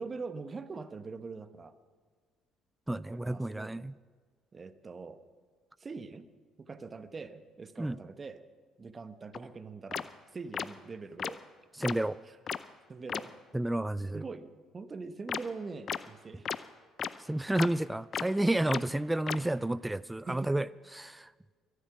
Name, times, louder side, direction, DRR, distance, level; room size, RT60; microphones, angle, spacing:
voice 1, 0.0-1.7 3.1-3.7 4.5-5.2 5.8-6.3 6.7-8.4 8.8-10.1 10.3-11.4 12.9-13.3 14.1-16.5 20.3-20.5, right 4 dB, 35° right, 11 dB, 1.1 m, -43 dB
voice 2, 2.9-3.9 7.8-8.0 11.8-12.2 13.5-14.2 17.2-21.3, right 1 dB, 10° right, 19 dB, 0.3 m, -31 dB
sound 1, 9.3-9.4 9.9-10.0 10.5-10.7 11.2-11.3 11.8-11.9 12.5-12.6 13.1-13.2 15.3-15.4 15.9-16.0 16.5-16.6 17.0-17.1 17.6-17.7 18.1-18.2 18.7-18.8 19.3-19.4, left 7 dB, 50° left, 0.5 m, -33 dB
23.0 x 8.3 x 6.0 m, 1.5 s
hypercardioid pair, 55°, 0 cm